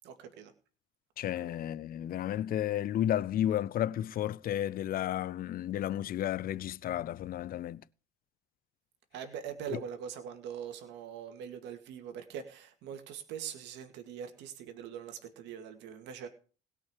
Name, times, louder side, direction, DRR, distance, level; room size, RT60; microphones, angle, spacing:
voice 1, 0.0-0.5 1.4-1.6 9.1-16.3, right 8 dB, 70° right, 2.2 m, -42 dB
voice 2, 1.2-7.8 9.7-9.8, left 11 dB, 50° left, 0.6 m, -32 dB
17.0 x 5.9 x 7.4 m
hypercardioid pair, 70°, 19 cm